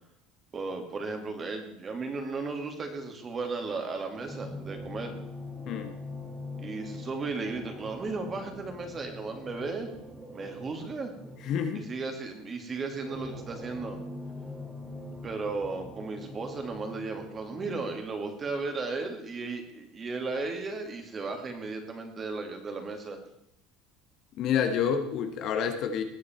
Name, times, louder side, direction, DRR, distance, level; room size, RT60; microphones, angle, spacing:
voice 1, 0.5-5.2 6.6-9.9 10.3-11.1 11.7-14.0 15.1-23.2, right 3 dB, 25° right, 4 dB, 2.5 m, -35 dB
sound 1, 4.2-11.8 12.7-18.0, left 2 dB, 5° right, 2.3 m, -43 dB
voice 2, 11.4-11.9 24.4-26.0, left 7 dB, 45° left, 6 dB, 1.6 m, -28 dB
19.5 x 8.4 x 4.6 m, 0.81 s
supercardioid pair, 140°, 0 cm